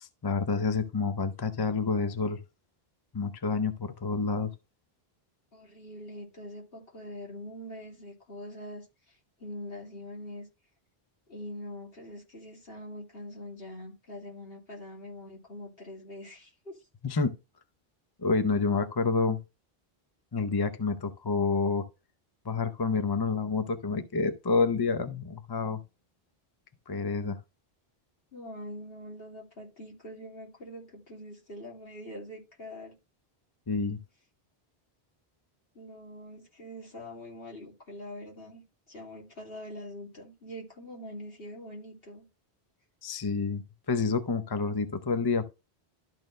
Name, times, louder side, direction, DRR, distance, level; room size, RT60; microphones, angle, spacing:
voice 1, 0.0-2.4 3.1-4.5 17.0-17.3 18.2-19.4 20.3-21.8 22.4-25.8 26.9-27.4 33.7-34.0 43.0-45.4, left 4 dB, 30° left, 0.6 m, -28 dB
voice 2, 5.5-8.8 9.4-10.5 11.3-16.8 28.3-32.9 35.7-42.2, equal, 65° left, 2.9 m, -43 dB
12.0 x 4.3 x 3.2 m
omnidirectional pair, 1.1 m